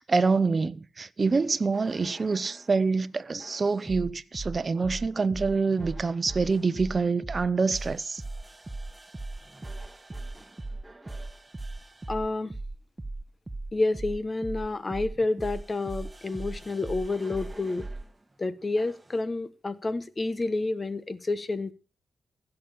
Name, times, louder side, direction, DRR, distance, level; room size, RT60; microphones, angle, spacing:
voice 1, 0.0-8.2, right 4 dB, 45° right, 0.8 m, -26 dB
sound 1, 1.7-2.7 3.4-18.1 18.8-19.1, right 2 dB, 25° right, 1.2 m, -39 dB
voice 2, 12.1-12.5 13.7-17.9 18.4-21.7, left 2 dB, 35° left, 1.2 m, -29 dB
15.5 x 7.0 x 6.8 m
supercardioid pair, 50°, 0 cm